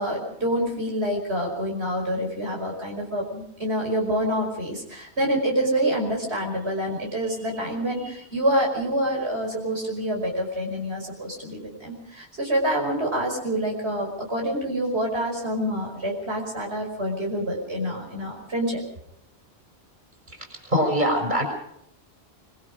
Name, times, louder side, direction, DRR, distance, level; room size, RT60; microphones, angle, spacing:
voice 1, 0.0-18.8, equal, 80° right, 0 dB, 5.8 m, -27 dB
voice 2, 20.7-21.4, equal, 45° right, 3 dB, 6.5 m, -22 dB
25.0 x 23.5 x 5.1 m, 0.73 s
omnidirectional pair, 1.1 m